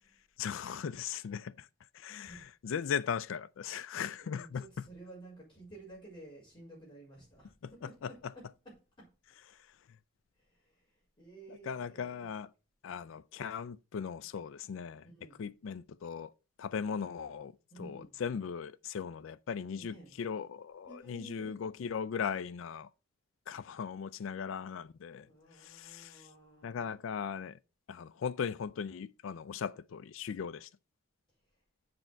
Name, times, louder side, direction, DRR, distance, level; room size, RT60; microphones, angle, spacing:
voice 1, 0.4-1.7 1.9-4.7 7.6-8.3 9.5-9.8 11.5-12.5 12.8-15.1 15.4-16.3 16.6-22.9 23.5-26.3 26.6-27.6 27.9-30.7, left 7 dB, 70° left, 0.4 m, -38 dB
voice 2, 4.2-9.1 10.4-12.2 15.0-15.5 17.7-18.2 19.8-20.2 20.9-21.7 25.2-26.9, right 2 dB, 25° left, 4.2 m, -53 dB
7.8 x 4.5 x 5.9 m
head